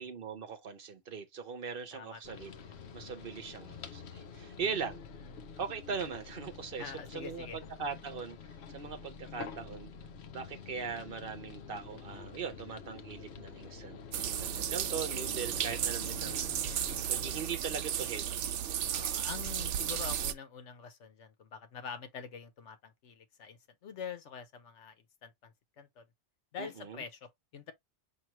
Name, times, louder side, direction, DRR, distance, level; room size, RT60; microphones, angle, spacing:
voice 1, 0.0-2.5 2.9-5.0 5.6-8.4 8.7-9.9 10.3-14.0 14.4-16.4 17.1-18.5 26.6-27.0, right 6 dB, 55° right, 0.9 m, -40 dB
voice 2, 1.9-2.4 4.6-5.5 6.8-7.6 16.0-16.8 18.9-25.0 25.2-26.0 26.5-27.7, left 6 dB, 85° left, 1.2 m, -46 dB
sound 1, 2.2-17.5, left 6 dB, 70° left, 1.0 m, -48 dB
sound 2, 14.1-20.3, right 10 dB, 90° right, 1.0 m, -34 dB
5.9 x 2.8 x 2.9 m
omnidirectional pair, 1.2 m